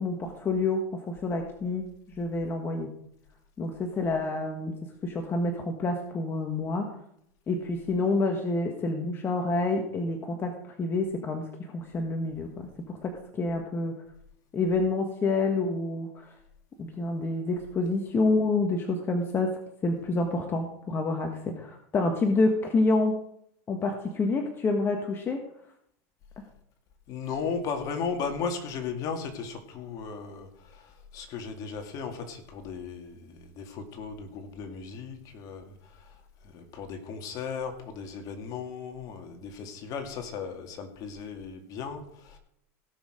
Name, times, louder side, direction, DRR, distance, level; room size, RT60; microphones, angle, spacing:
voice 1, 0.0-1.8 2.1-2.9 3.6-7.0 7.5-13.9 14.5-16.3 16.8-19.5 19.8-23.2 23.7-25.4, left 3 dB, 30° left, 4 dB, 1.5 m, -28 dB
voice 2, 27.1-42.4, left 5 dB, 50° left, 5 dB, 2.2 m, -36 dB
17.0 x 6.5 x 5.0 m, 0.72 s
supercardioid pair, 120°, 8 cm